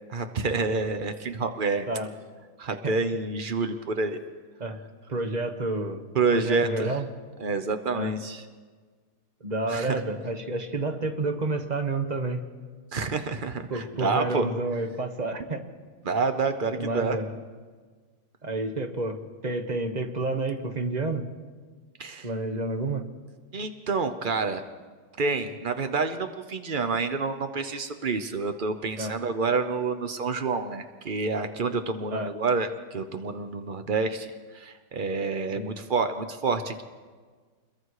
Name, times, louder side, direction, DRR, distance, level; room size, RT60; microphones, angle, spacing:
voice 1, 0.1-1.9 2.6-4.2 6.1-7.0 7.4-8.4 9.7-10.0 12.9-14.4 16.0-17.2 22.0-22.3 23.5-24.6 25.2-36.8, right 4 dB, 70° right, 8 dB, 0.4 m, -28 dB
voice 2, 5.1-6.0 6.3-7.0 7.9-8.1 9.4-12.4 13.7-15.6 16.7-17.3 18.4-21.2 22.2-23.0 29.0-29.1 32.1-32.3 35.5-35.7, right 2 dB, 25° right, 6 dB, 1.1 m, -29 dB
28.0 x 22.0 x 4.9 m, 1.5 s
omnidirectional pair, 2.3 m